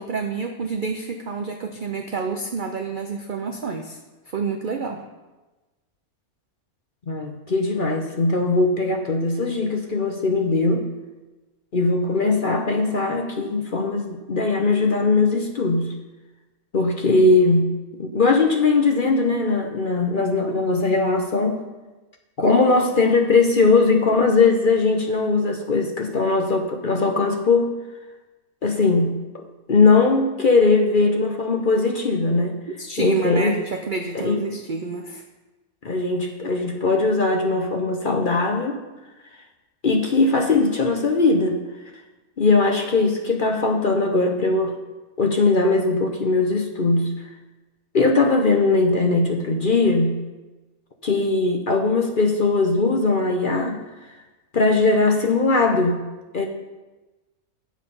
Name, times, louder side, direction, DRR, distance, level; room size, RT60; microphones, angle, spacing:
voice 1, 0.0-4.0 4.3-5.0 32.8-35.2, right 4 dB, 55° right, 4 dB, 0.5 m, -29 dB
voice 2, 7.1-10.8 11.7-15.9 16.7-17.7 18.0-21.6 22.4-27.7 28.6-29.4 29.7-32.6 33.0-33.5 34.1-34.6 35.8-38.8 39.8-41.6 42.4-44.7 45.2-47.1 47.9-50.2 51.0-53.8 54.5-56.0 56.3-56.5, left 3 dB, 45° left, 3 dB, 0.8 m, -20 dB
8.9 x 7.6 x 5.4 m, 1.1 s
omnidirectional pair, 1.6 m